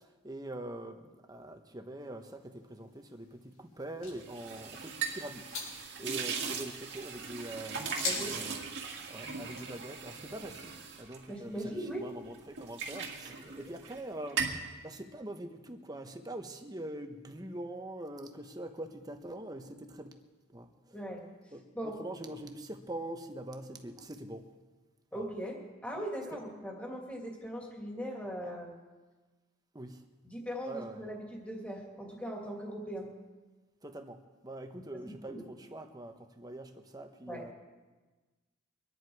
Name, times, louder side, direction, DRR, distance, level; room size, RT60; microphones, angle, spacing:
voice 1, 0.0-5.6 6.0-8.7 9.1-20.2 20.5-21.0 21.5-21.7 22.0-24.5 25.1-25.3 29.7-30.1 30.7-31.0 33.8-37.5, right 1 dB, 20° right, 5 dB, 1.1 m, -44 dB
sound 1, 2.0-9.8, left 3 dB, 80° left, 6.0 m, -45 dB
sound 2, 4.2-12.0 12.3-14.0 14.3-14.7, right 5 dB, 55° right, 2.1 m, -39 dB
voice 2, 8.0-8.4 11.3-12.1 13.4-13.5 20.9-22.0 25.1-28.7 30.2-33.1 34.7-35.4 37.3-37.5, equal, 5° left, -1 dB, 2.7 m, -40 dB
24.5 x 10.5 x 4.8 m, 1.3 s
head